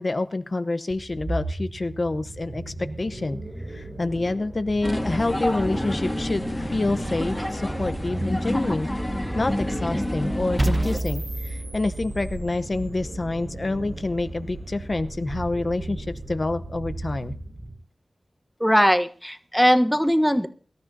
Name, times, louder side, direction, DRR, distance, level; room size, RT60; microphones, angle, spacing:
voice 1, 0.0-3.4 3.7-8.9 9.3-17.3, left 2 dB, 45° left, 11 dB, 0.8 m, -27 dB
sound 1, 0.9-17.8, right 2 dB, 65° right, 6.8 m, -35 dB
sound 2, 4.8-11.0, left 1 dB, 15° left, 2.1 m, -29 dB
sound 3, 10.6-12.6, right 1 dB, 25° right, 1.0 m, -28 dB
voice 2, 18.6-20.5, equal, ahead, 7 dB, 1.0 m, -20 dB
24.0 x 13.0 x 2.7 m, 0.41 s
wide cardioid pair, 75°, 0 cm